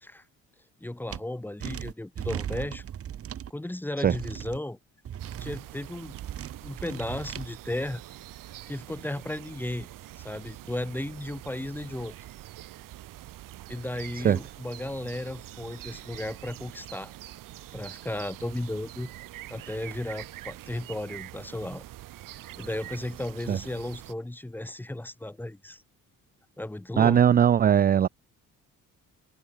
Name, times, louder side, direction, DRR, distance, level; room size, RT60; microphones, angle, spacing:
voice 1, 0.8-2.8 3.5-4.8 5.4-6.2 6.6-8.0 8.7-9.9 10.2-12.2 13.7-17.1 17.7-19.1 19.5-21.8 22.6-25.8 26.6-27.2, left 1 dB, 5° left, 1.3 m, -35 dB
sound 1, 1.1-1.2 1.6-3.5 4.0-4.6 5.1-5.6 6.1-7.5, right 10 dB, 45° right, 1.3 m, -37 dB
sound 2, 5.2-24.1, right 15 dB, 75° right, 1.7 m, -45 dB
voice 2, 27.0-28.1, right 9 dB, 30° right, 0.4 m, -20 dB
cardioid pair, 135°, 32 cm